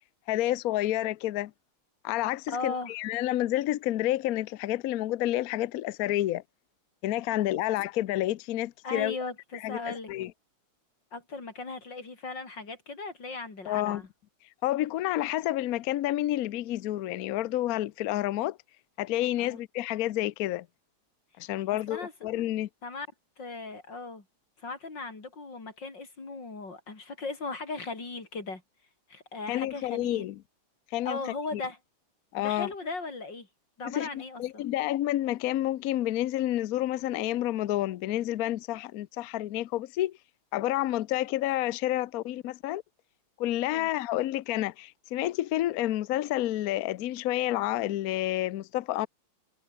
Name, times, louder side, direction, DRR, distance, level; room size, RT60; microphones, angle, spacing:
voice 1, 0.3-1.5 2.0-6.4 7.0-9.2 9.6-9.8 10.1-10.3 13.7-14.0 14.6-18.6 19.0-20.7 21.4-22.7 29.5-30.4 30.9-31.2 31.5-31.6 32.3-32.7 33.8-34.1 34.4-40.1 40.5-42.8 43.4-49.1, left 14 dB, 80° left, 0.8 m, -29 dB
voice 2, 2.5-2.9 7.3-7.4 8.8-10.1 11.1-14.1 19.4-19.6 21.5-21.6 21.9-22.1 22.8-23.1 23.4-24.2 24.6-28.6 29.1-30.3 31.0-31.8 32.4-33.5 33.8-34.6 43.7-43.9, left 3 dB, 55° left, 5.2 m, -37 dB
omnidirectional pair, 2.4 m